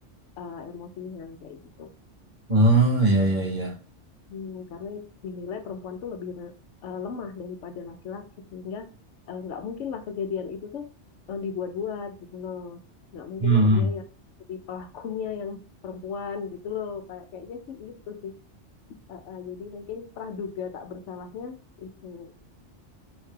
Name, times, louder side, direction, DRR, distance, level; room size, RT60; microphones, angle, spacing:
voice 1, 0.4-1.9 4.3-6.5 6.8-8.2 8.5-8.9 9.3-10.9 11.3-12.8 13.1-14.0 14.5-18.4 19.1-22.4, left 6 dB, 80° left, 7 dB, 1.0 m, -36 dB
voice 2, 2.5-3.7 13.4-13.9, right 1 dB, 45° right, -1 dB, 0.9 m, -20 dB
3.2 x 2.8 x 3.3 m, 0.37 s
omnidirectional pair, 1.2 m